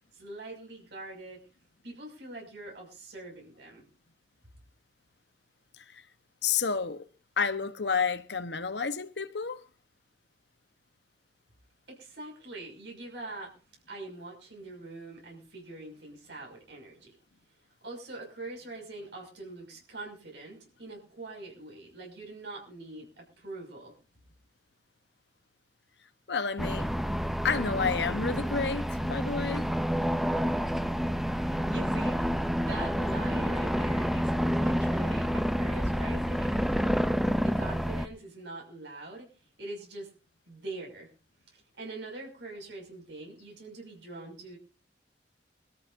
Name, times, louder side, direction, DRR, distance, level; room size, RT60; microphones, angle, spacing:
voice 1, 0.1-1.4 1.8-3.8 11.9-13.5 13.9-17.1 17.8-23.9 31.2-36.9 37.4-39.3 39.6-40.1 40.5-41.1 41.5-44.6, right 2 dB, 75° right, 6.3 m, -43 dB
voice 2, 6.4-7.0 7.4-9.6 26.3-26.9 27.4-29.7, left 5 dB, 75° left, 1.1 m, -30 dB
sound 1, 26.6-38.1, equal, ahead, 0.6 m, -29 dB
24.5 x 13.5 x 2.7 m
head